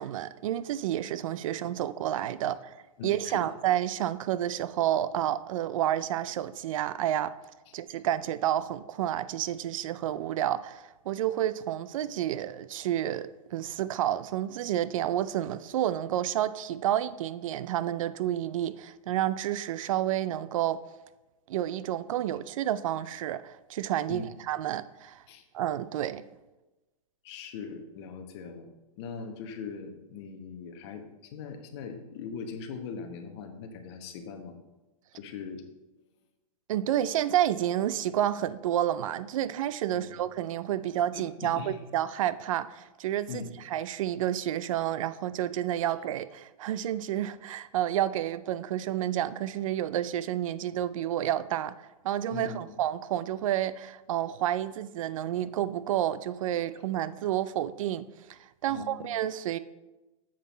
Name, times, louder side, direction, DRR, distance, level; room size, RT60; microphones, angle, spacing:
voice 1, 0.0-2.8 3.0-7.3 7.7-20.8 21.5-25.2 25.5-26.2 36.7-59.6, right 12 dB, 65° right, 0.4 m, -30 dB
voice 2, 3.0-3.5 7.7-7.8 24.1-24.3 25.3-25.4 27.2-34.6 35.1-35.6 39.9-40.2 41.1-41.8 43.3-43.5 52.3-52.6 58.7-59.0, left 5 dB, 50° left, 1.1 m, -41 dB
7.4 x 5.5 x 4.1 m
hypercardioid pair, 150°, 18 cm